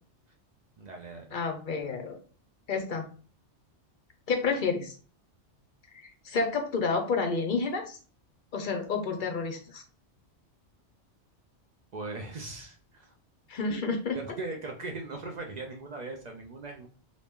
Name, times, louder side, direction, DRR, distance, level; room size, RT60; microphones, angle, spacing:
voice 1, 0.8-1.4 11.9-13.1 14.1-16.9, right 3 dB, 50° right, 3 dB, 0.5 m, -39 dB
voice 2, 1.3-2.2 2.7-3.1 4.3-4.9 5.9-8.0 8.5-9.8 13.5-14.2, left 4 dB, 55° left, 5 dB, 0.6 m, -30 dB
2.9 x 2.6 x 3.5 m, 0.40 s
omnidirectional pair, 1.2 m